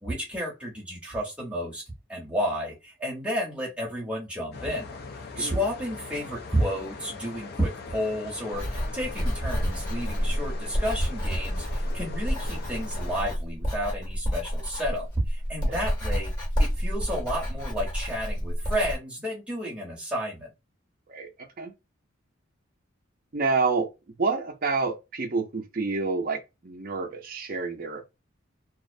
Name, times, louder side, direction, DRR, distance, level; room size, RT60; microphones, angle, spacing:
voice 1, 0.0-1.8 2.1-4.9 5.4-16.3 16.6-20.5, equal, 5° right, 0.8 m, -31 dB
sound 1, 4.5-13.2, left 4 dB, 50° left, 0.4 m, -41 dB
Writing, 8.5-19.0, equal, 20° left, 1.0 m, -29 dB
voice 2, 21.1-21.7 23.3-28.1, right 4 dB, 45° right, 0.5 m, -29 dB
2.5 x 2.0 x 2.5 m
head